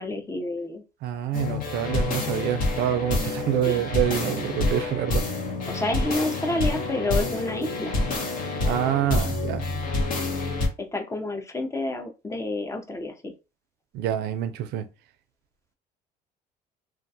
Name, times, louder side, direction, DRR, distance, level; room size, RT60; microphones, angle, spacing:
voice 1, 0.0-0.8 3.6-3.8 5.7-8.0 10.8-13.3, left 2 dB, 15° left, 0.5 m, -29 dB
voice 2, 1.0-5.2 8.6-9.7 13.9-14.8, right 11 dB, 75° right, 0.4 m, -26 dB
sound 1, 1.3-10.7, left 2 dB, 55° left, 0.8 m, -27 dB
2.3 x 2.2 x 2.6 m
cardioid pair, 110°, 17 cm